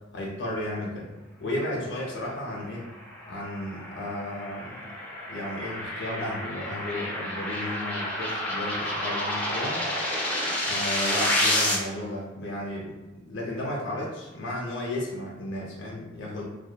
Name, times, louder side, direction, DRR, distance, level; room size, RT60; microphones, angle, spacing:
voice 1, 0.1-1.1 1.4-2.9 3.3-4.9 5.3-9.8 10.7-13.0 13.3-16.5, left 1 dB, 65° left, -3 dB, 0.5 m, -33 dB
sound 1, 2.9-11.8, left 1 dB, 5° left, 0.4 m, -29 dB
2.3 x 2.1 x 2.7 m, 1.1 s
head